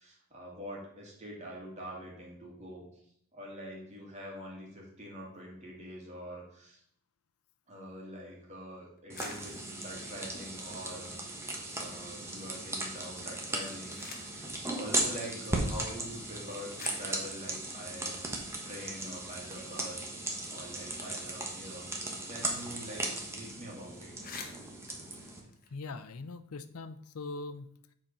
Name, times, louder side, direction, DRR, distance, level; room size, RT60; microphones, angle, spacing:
voice 1, 0.0-2.9 3.3-6.8 7.7-18.2 18.6-20.1 20.5-21.9 22.3-24.2, equal, 30° right, -3 dB, 2.4 m, -45 dB
sound 1, 9.0-11.6 11.9-12.6 13.4-14.5 15.5-15.6 16.4-16.5 16.8-19.1 19.5-19.6 19.8-22.4 22.7-22.8 23.1-23.3 23.7-23.8 24.0-26.3, left 5 dB, 45° left, 1.1 m, -51 dB
sound 2, 9.1-25.4, right 2 dB, 10° right, 1.1 m, -37 dB
voice 2, 25.7-27.9, left 3 dB, 85° left, 12 dB, 0.6 m, -42 dB
7.7 x 4.3 x 5.4 m, 0.68 s
head